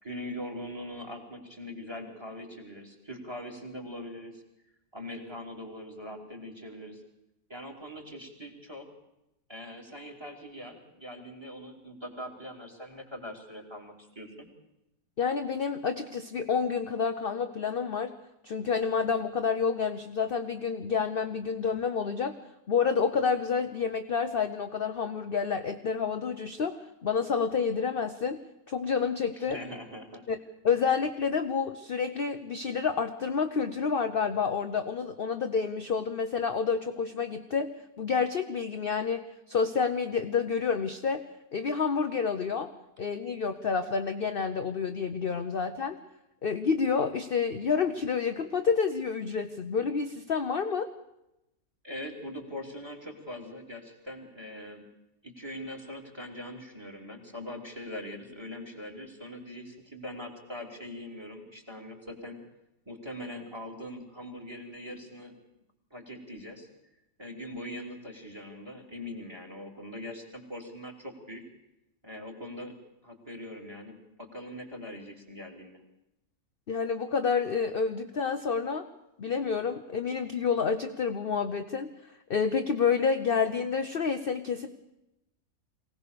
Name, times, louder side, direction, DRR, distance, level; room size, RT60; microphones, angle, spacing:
voice 1, 0.0-4.4 4.9-7.0 7.5-8.9 9.5-14.5 29.4-30.2 51.8-54.8 55.2-62.4 62.8-65.4 65.9-66.7 67.2-71.4 72.0-72.7 73.0-75.8, left 1 dB, 15° right, 4 dB, 3.3 m, -42 dB
voice 2, 15.2-18.1 18.4-22.4 22.7-28.4 28.7-29.6 30.3-30.4 30.6-37.7 38.0-41.3 41.5-42.7 43.0-46.0 46.4-50.9 76.7-78.9 79.2-81.9 82.3-84.7, left 5 dB, 45° left, 7 dB, 0.9 m, -29 dB
23.5 x 17.5 x 6.8 m, 0.88 s
omnidirectional pair, 1.6 m